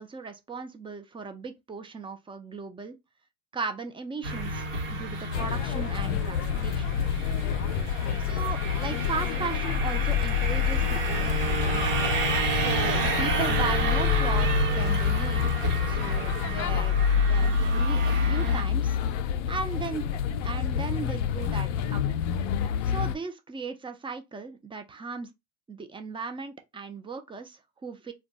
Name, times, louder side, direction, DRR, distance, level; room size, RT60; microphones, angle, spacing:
voice 1, 0.0-3.0 3.5-6.9 8.2-11.9 12.5-15.5 15.9-19.0 19.5-20.1 20.4-22.1 22.8-25.3 25.7-28.1, right 4 dB, 15° right, 0.4 m, -37 dB
sound 1, 4.2-18.6, right 3 dB, 80° right, 1.2 m, -31 dB
sound 2, 5.3-23.2, left 7 dB, 70° left, 0.5 m, -27 dB
2.2 x 2.2 x 3.8 m
hypercardioid pair, 85°, 38 cm